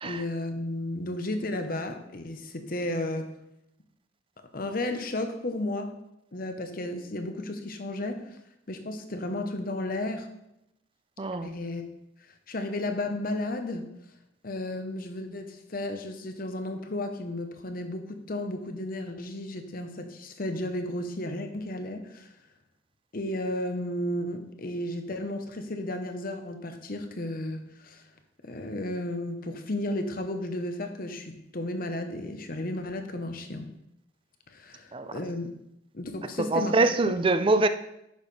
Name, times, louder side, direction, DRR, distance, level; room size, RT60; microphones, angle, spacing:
voice 1, 0.0-3.3 4.5-5.9 6.3-8.2 8.7-10.3 11.4-11.9 12.5-13.9 14.4-22.3 23.1-28.0 28.4-33.7 34.5-35.5 35.9-36.7 37.1-37.2, left 1 dB, 50° left, 6 dB, 0.9 m, -33 dB
voice 2, 11.2-11.6 34.9-35.2 36.4-37.7, right 2 dB, 30° right, 10 dB, 0.4 m, -24 dB
10.5 x 6.4 x 3.3 m, 0.83 s
head